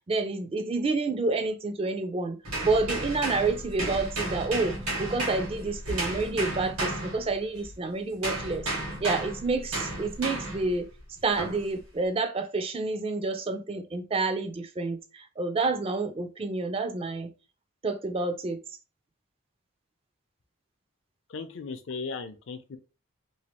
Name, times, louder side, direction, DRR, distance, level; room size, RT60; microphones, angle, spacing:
voice 1, 0.1-2.4 2.6-8.7 9.0-10.9 11.2-17.3 17.8-18.6, right 3 dB, 25° right, 0.3 m, -29 dB
sound 1, 2.4-7.7 8.2-10.7 11.4-11.7, right 1 dB, 85° right, 1.4 m, -33 dB
voice 2, 21.3-22.8, left 4 dB, 60° left, 0.4 m, -37 dB
3.1 x 2.4 x 2.9 m
head